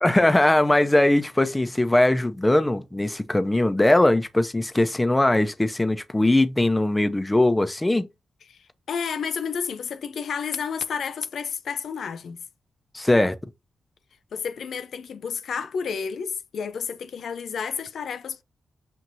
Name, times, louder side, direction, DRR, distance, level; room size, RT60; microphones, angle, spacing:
voice 1, 0.0-8.1 12.9-13.3, left 1 dB, 20° left, 0.7 m, -20 dB
voice 2, 8.9-12.4 14.3-18.4, left 6 dB, 75° left, 0.5 m, -31 dB
6.2 x 2.8 x 2.6 m
supercardioid pair, 45°, 0 cm